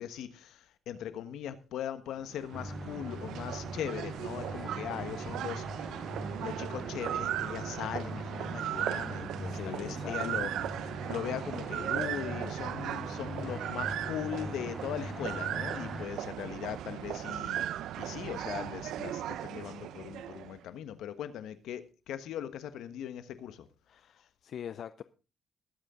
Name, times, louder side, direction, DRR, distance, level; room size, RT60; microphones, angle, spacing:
voice 1, 0.0-17.7 18.0-23.7, left 10 dB, 80° left, 1.3 m, -40 dB
sound 1, 2.2-20.6, right 11 dB, 80° right, 0.7 m, -37 dB
sound 2, 2.5-16.1, left 1 dB, ahead, 0.5 m, -42 dB
voice 2, 9.5-10.5 23.9-25.0, left 9 dB, 60° left, 0.6 m, -43 dB
20.5 x 8.4 x 3.8 m
cardioid pair, 90°, 0 cm